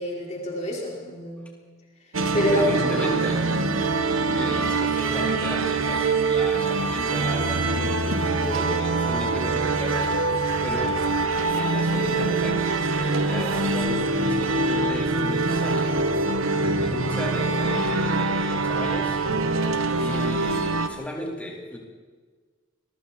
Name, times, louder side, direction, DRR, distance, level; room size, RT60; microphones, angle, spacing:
voice 1, 0.0-1.5 2.3-3.2, equal, 35° left, -2 dB, 4.8 m, -27 dB
sound 1, 2.1-20.9, right 3 dB, 80° right, 1.3 m, -24 dB
voice 2, 2.3-3.4 4.2-11.0 11.4-19.2 20.0-21.8, equal, 5° left, -2 dB, 4.2 m, -35 dB
29.5 x 22.0 x 4.4 m, 1.5 s
head